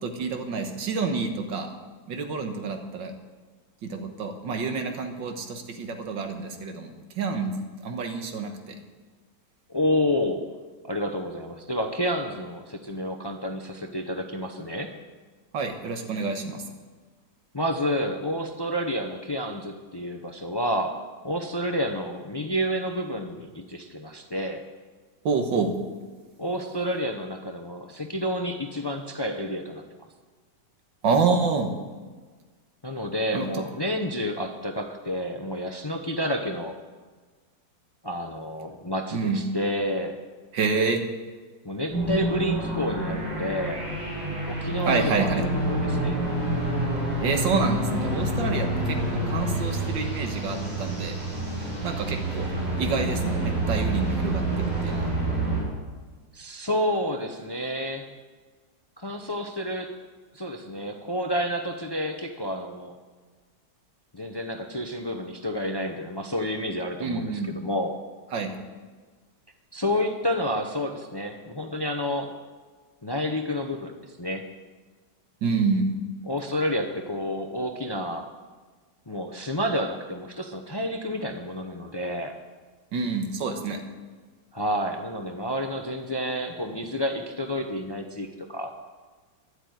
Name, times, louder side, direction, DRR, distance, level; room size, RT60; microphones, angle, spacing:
voice 1, 0.0-1.7 2.1-3.1 3.8-7.5 7.8-8.8 15.5-16.6 25.3-25.7 31.0-31.7 33.3-33.5 39.1-39.4 40.5-41.0 44.9-45.4 47.2-51.2 51.8-52.5 52.8-55.1 67.0-67.5 68.3-68.5 75.4-75.9 82.9-83.8, right 4 dB, 85° right, 6 dB, 2.0 m, -28 dB
voice 2, 9.7-10.4 10.8-14.9 17.5-21.0 21.2-24.6 26.4-29.8 32.8-36.8 38.0-40.2 41.6-43.8 44.5-46.2 56.3-58.1 59.0-59.9 60.3-62.9 64.1-67.9 69.7-72.3 73.0-73.9 74.2-74.5 76.2-78.3 79.1-82.3 84.5-88.7, equal, 40° left, 5 dB, 0.3 m, -29 dB
sound 1, 41.9-55.6, right 1 dB, 65° right, 6.0 m, -28 dB
12.0 x 8.2 x 9.4 m, 1.4 s
omnidirectional pair, 1.9 m